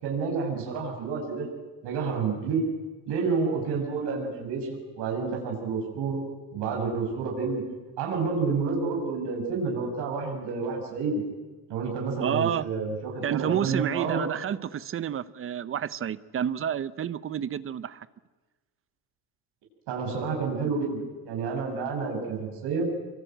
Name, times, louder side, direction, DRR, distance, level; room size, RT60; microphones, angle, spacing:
voice 1, 0.0-1.5 1.8-2.6 3.1-6.2 6.5-7.6 8.0-11.2 11.7-14.2 19.9-22.9, right 4 dB, 90° right, 0 dB, 7.1 m, -29 dB
voice 2, 12.2-12.7 13.2-18.1, right 9 dB, 35° right, 17 dB, 0.8 m, -29 dB
26.5 x 24.5 x 9.2 m, 1.3 s
cardioid pair, 170°, 39 cm